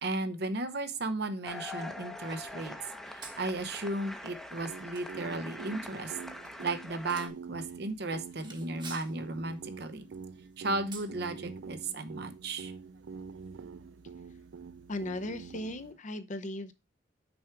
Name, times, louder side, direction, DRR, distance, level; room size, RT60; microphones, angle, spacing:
voice 1, 0.0-2.7 3.1-6.2 6.6-10.1 10.6-12.7, right 2 dB, 60° right, 10 dB, 0.9 m, -35 dB
sound 1, 1.5-7.3, left 1 dB, ahead, 0.8 m, -44 dB
sound 2, 3.2-15.9, right 4 dB, 25° right, 1.2 m, -55 dB
sound 3, 4.6-16.0, right 5 dB, 75° right, 0.4 m, -46 dB
voice 2, 14.9-16.7, left 1 dB, 40° left, 10 dB, 0.7 m, -37 dB
6.2 x 4.9 x 4.6 m, 0.24 s
head